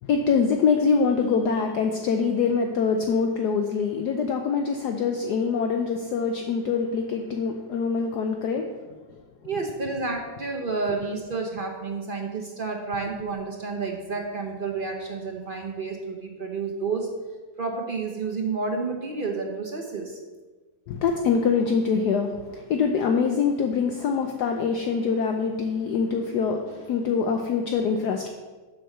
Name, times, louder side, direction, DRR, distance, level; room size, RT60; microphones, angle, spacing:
voice 1, 0.0-8.7 20.9-28.3, left 5 dB, 70° left, 4 dB, 1.0 m, -24 dB
voice 2, 9.4-17.1 17.6-20.2, right 4 dB, 50° right, 1 dB, 0.6 m, -30 dB
7.2 x 5.5 x 6.6 m, 1.3 s
omnidirectional pair, 2.2 m